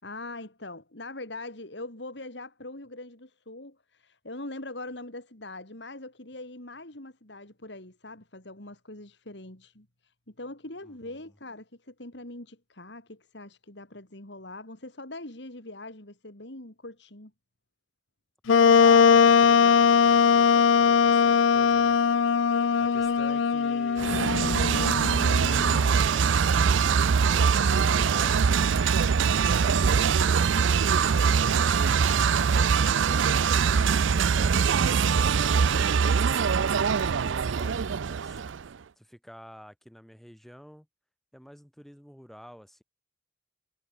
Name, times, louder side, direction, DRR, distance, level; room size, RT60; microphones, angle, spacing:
voice 1, 0.0-17.3, left 2 dB, 60° left, 3.6 m, -42 dB
voice 2, 10.8-11.3 18.8-22.0 22.8-24.4 24.8-28.6 29.4-31.1 31.5-34.9 35.4-38.4 39.0-40.9 41.3-42.8, equal, ahead, 3.0 m, -49 dB
Wind instrument woodwind instrument, 18.5-25.9, left 6 dB, 80° left, 0.5 m, -20 dB
sound 1, 24.0-38.7, right 6 dB, 80° right, 0.5 m, -23 dB
head